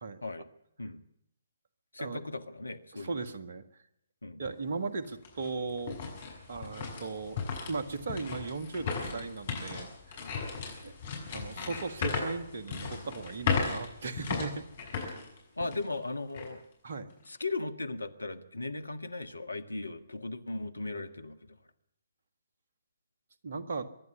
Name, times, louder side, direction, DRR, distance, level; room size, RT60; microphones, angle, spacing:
voice 1, 1.9-3.2 4.2-4.4 10.3-10.6 15.6-16.6 17.3-21.6, left 2 dB, 75° left, 11 dB, 1.6 m, -37 dB
voice 2, 2.9-3.6 4.4-6.0 6.5-10.2 10.8-10.9 11.3-15.2 16.8-17.1 23.4-23.9, right 4 dB, 50° right, 10 dB, 1.7 m, -37 dB
sound 1, 4.4-4.5 5.0-16.0 16.3-16.5 17.1-17.4, left 5 dB, 40° left, 6.6 m, -36 dB
24.5 x 11.0 x 9.8 m, 0.77 s
figure-of-eight pair, 135°, 0 cm